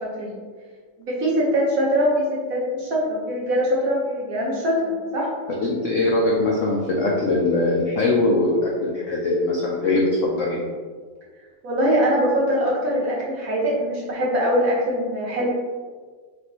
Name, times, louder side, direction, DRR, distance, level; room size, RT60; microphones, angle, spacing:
voice 1, 0.0-0.4 1.0-5.3 11.6-15.5, equal, 60° right, -4 dB, 0.9 m, -22 dB
voice 2, 5.6-10.6, left 2 dB, 90° left, -3 dB, 0.6 m, -21 dB
5.1 x 2.6 x 3.0 m, 1.5 s
omnidirectional pair, 2.1 m